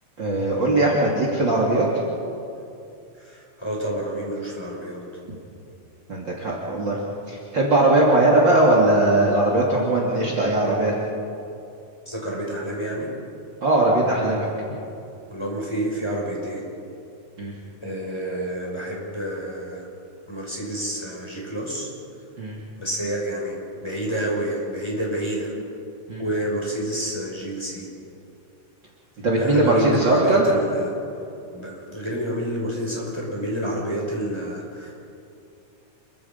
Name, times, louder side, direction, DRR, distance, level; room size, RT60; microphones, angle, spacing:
voice 1, 0.2-1.9 6.1-7.0 7.3-10.9 13.6-14.5 17.4-17.5 22.4-22.6 26.1-26.2 29.2-30.5, right 2 dB, 40° right, -3 dB, 3.3 m, -19 dB
voice 2, 3.2-5.0 12.1-13.1 15.3-16.6 17.8-19.9 20.3-21.9 22.8-23.6 23.8-25.5 26.2-27.9 29.4-30.9 31.5-34.9, right 1 dB, 10° left, -3 dB, 5.8 m, -28 dB
29.0 x 23.5 x 5.5 m, 2.6 s
omnidirectional pair, 3.4 m